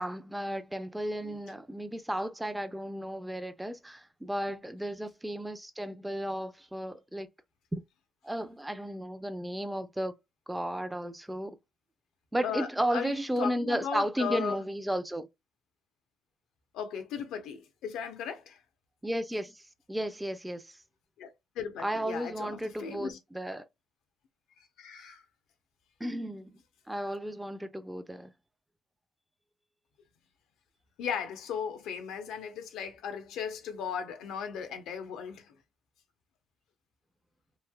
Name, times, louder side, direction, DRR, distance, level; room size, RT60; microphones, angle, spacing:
voice 1, 0.0-7.3 7.7-7.8 8.2-10.1 10.5-11.6 12.3-15.3 19.0-19.6 19.9-20.8 21.8-23.6 26.0-26.6 26.9-28.3, equal, 5° right, 0.5 m, -34 dB
voice 2, 12.4-14.6 16.7-18.6 21.2-23.2 24.6-25.2 31.0-35.6, left 7 dB, 90° left, 0.8 m, -37 dB
3.2 x 2.7 x 2.2 m
cardioid pair, 90°, 0 cm